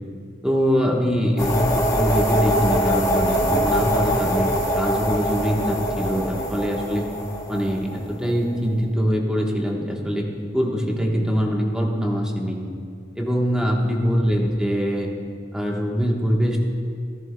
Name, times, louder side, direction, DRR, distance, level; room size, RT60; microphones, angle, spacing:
voice 1, 0.4-7.0 7.5-10.3 10.5-12.6 13.1-15.1 15.5-16.6, equal, 5° right, -1 dB, 1.1 m, -23 dB
sound 1, 1.4-8.3, equal, 20° left, 1.4 m, -23 dB
14.5 x 13.5 x 2.2 m, 2.3 s
head